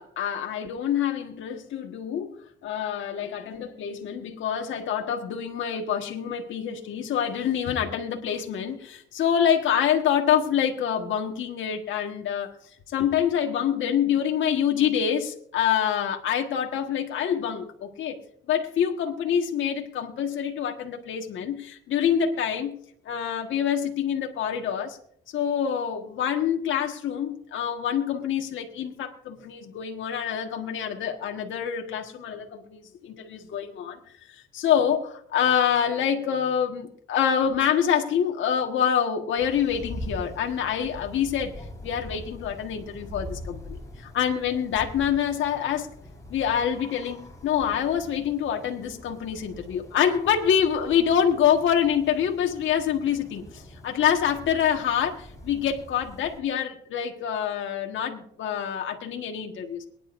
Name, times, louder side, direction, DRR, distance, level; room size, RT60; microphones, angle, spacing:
voice 1, 0.0-2.3 2.6-12.5 12.9-18.2 18.5-22.8 23.0-25.0 25.3-34.0 34.3-41.5 41.8-43.8 44.0-45.9 46.3-59.8, left 8 dB, 75° left, 2 dB, 1.6 m, -26 dB
sound 1, 39.4-56.4, left 1 dB, 15° left, 4.7 m, -43 dB
23.0 x 10.0 x 2.6 m, 0.64 s
cardioid pair, 90°, 20 cm